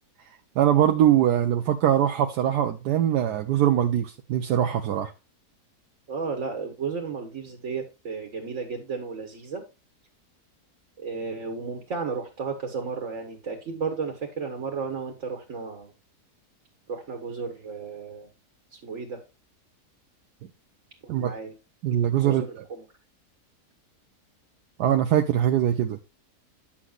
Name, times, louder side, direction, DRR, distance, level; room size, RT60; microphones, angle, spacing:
voice 1, 0.6-5.1 21.1-21.3 21.8-22.4 24.8-26.0, right 11 dB, 90° right, 1.3 m, -22 dB
voice 2, 6.1-9.6 11.0-15.9 16.9-18.3 18.7-19.2 21.0-21.5 22.2-22.9, right 5 dB, 50° right, 1.7 m, -33 dB
9.8 x 7.3 x 2.4 m
omnidirectional pair, 1.7 m